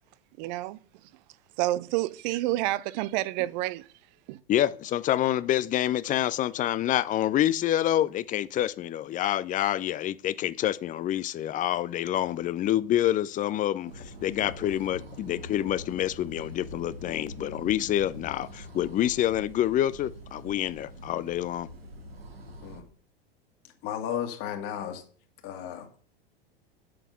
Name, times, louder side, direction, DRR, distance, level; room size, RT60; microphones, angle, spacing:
voice 1, 0.4-0.8 1.6-3.9 4.3-4.4, right 17 dB, 45° right, 0.6 m, -29 dB
voice 2, 4.5-21.7, left 12 dB, 25° left, 0.5 m, -27 dB
sound 1, 13.8-22.8, equal, 85° right, 1.8 m, -44 dB
voice 3, 23.8-25.0 25.4-26.0, left 9 dB, 50° left, 2.4 m, -34 dB
9.0 x 7.9 x 5.6 m
figure-of-eight pair, 85°, 30 cm